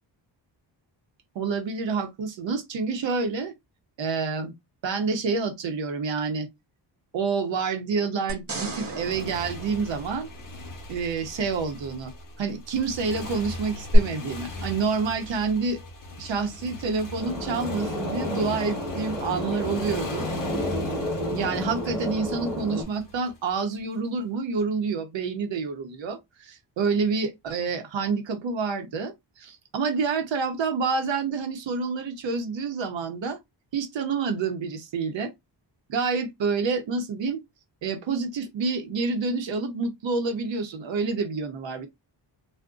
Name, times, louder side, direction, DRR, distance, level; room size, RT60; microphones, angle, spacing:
voice 1, 1.3-3.5 4.0-4.5 4.8-6.5 7.1-10.3 10.9-12.1 12.4-15.8 16.2-20.3 21.3-33.4 33.7-35.3 35.9-37.4 37.8-41.9, right 4 dB, 70° right, 0.9 m, -28 dB
sound 1, 8.3-10.8 13.9-14.0, right 2 dB, 30° right, 0.8 m, -35 dB
Motorcycle, 8.6-23.8, left 2 dB, 45° left, 0.8 m, -40 dB
sound 2, 17.2-22.8, left 1 dB, 5° right, 1.2 m, -31 dB
2.5 x 2.2 x 3.6 m
wide cardioid pair, 140°, 47 cm